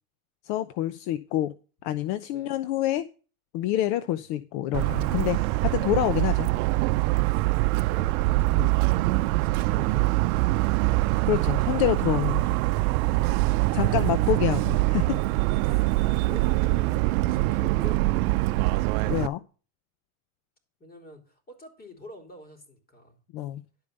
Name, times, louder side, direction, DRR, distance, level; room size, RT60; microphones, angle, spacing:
voice 1, 0.4-1.5 1.8-3.1 3.5-6.5 8.6-8.7 11.3-12.6 13.7-15.2 19.1-19.4 23.3-23.6, left 13 dB, 60° left, 0.8 m, -27 dB
Motor vehicle (road) / Siren, 4.7-19.3, right 20 dB, 75° right, 0.6 m, -24 dB
voice 2, 7.3-8.4 9.4-10.9 14.0-15.1 15.6-18.5 20.8-23.2, left 1 dB, 20° left, 4.0 m, -47 dB
11.5 x 5.1 x 6.7 m
supercardioid pair, 110°, 44 cm